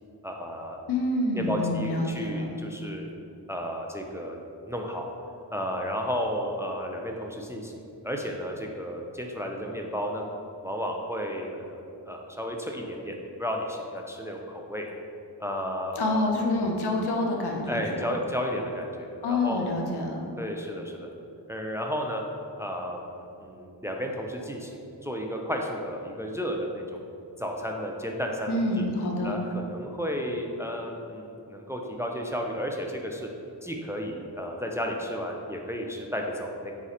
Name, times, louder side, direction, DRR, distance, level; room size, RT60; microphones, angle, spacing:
voice 1, 0.2-0.8 1.3-3.0 3.5-4.4 4.7-5.1 5.5-10.2 10.6-14.9 15.4-16.2 17.7-19.7 20.4-21.1 21.5-22.2 22.6-27.0 27.4-28.9 29.2-33.3 33.6-36.7, equal, 5° right, 1 dB, 0.3 m, -33 dB
voice 2, 0.9-2.5 16.0-18.1 19.2-20.2 28.5-29.3, left 2 dB, 70° left, 1 dB, 0.7 m, -27 dB
4.1 x 2.5 x 4.1 m, 2.6 s
cardioid pair, 60°, 42 cm